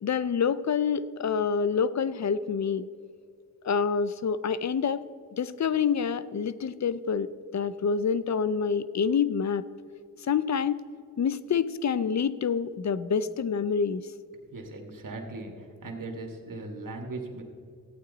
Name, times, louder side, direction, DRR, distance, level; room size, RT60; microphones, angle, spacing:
voice 1, 0.0-2.9 3.6-5.0 5.4-9.6 10.2-10.8 11.2-14.1, left 6 dB, 55° left, 15 dB, 0.5 m, -27 dB
voice 2, 14.5-17.4, right 2 dB, 70° right, 3 dB, 1.7 m, -38 dB
14.5 x 8.8 x 3.9 m, 2.2 s
cardioid pair, 50°, 33 cm